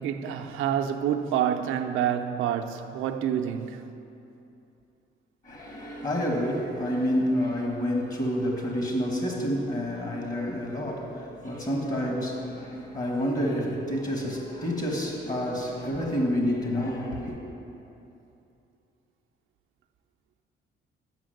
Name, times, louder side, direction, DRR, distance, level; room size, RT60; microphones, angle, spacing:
voice 1, 0.0-3.8, right 9 dB, 85° right, 0.5 m, -27 dB
voice 2, 5.4-17.4, equal, 40° left, 1.4 m, -28 dB
7.3 x 5.9 x 6.4 m
cardioid pair, 90°, 20 cm